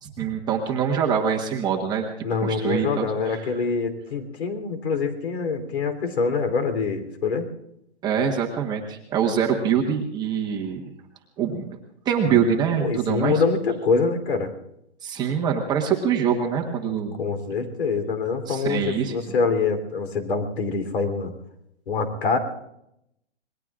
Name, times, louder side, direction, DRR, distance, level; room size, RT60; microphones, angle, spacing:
voice 1, 0.0-2.1 2.4-3.5 8.0-10.9 11.4-11.6 12.0-13.4 15.0-17.2 18.5-19.2, right 7 dB, 10° right, 0 dB, 1.3 m, -24 dB
voice 2, 2.2-7.5 12.3-12.4 12.7-14.5 17.2-21.3 21.9-22.4, left 4 dB, 65° left, 7 dB, 3.5 m, -25 dB
27.5 x 21.0 x 2.5 m, 0.80 s
hypercardioid pair, 155°, 34 cm